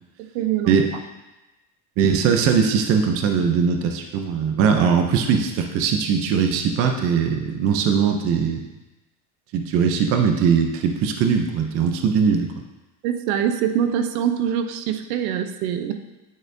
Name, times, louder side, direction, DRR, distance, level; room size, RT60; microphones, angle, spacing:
voice 1, 0.3-0.8 13.0-15.9, right 9 dB, 80° right, 8 dB, 0.7 m, -24 dB
voice 2, 2.0-8.7 9.5-12.5, right 6 dB, 35° right, 5 dB, 0.4 m, -20 dB
9.1 x 4.2 x 2.6 m, 1.0 s
cardioid pair, 160°, 41 cm